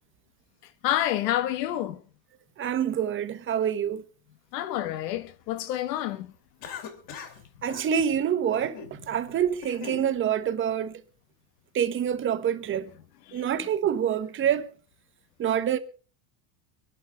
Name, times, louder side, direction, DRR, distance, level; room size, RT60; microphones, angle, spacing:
voice 1, 0.8-2.0 4.5-6.3 13.3-13.4, left 12 dB, 90° left, 1.5 m, -28 dB
voice 2, 2.6-4.0 7.6-11.0 11.7-12.9 13.3-14.7 15.4-15.8, right 9 dB, 25° right, 1.1 m, -26 dB
Cough, 6.6-7.4 7.7-7.9 8.5-8.9 9.4-10.1, left 6 dB, 45° left, 3.3 m, -40 dB
25.0 x 11.5 x 3.5 m
supercardioid pair, 155°, 48 cm